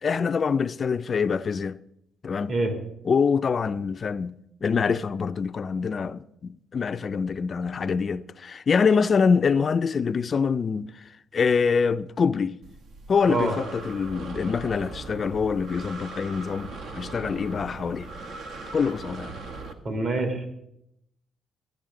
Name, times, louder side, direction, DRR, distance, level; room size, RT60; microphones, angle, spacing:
voice 1, 0.0-1.8 2.2-2.5 3.0-4.4 4.6-11.0 11.3-12.6 13.1-18.1 18.7-19.4, left 5 dB, 45° left, 0.4 m, -25 dB
Breathing, 12.6-19.7, right 3 dB, 70° right, 1.3 m, -39 dB
voice 2, 19.8-20.5, right 2 dB, 55° right, 2.9 m, -25 dB
14.0 x 9.6 x 3.8 m
cardioid pair, 90°, 0 cm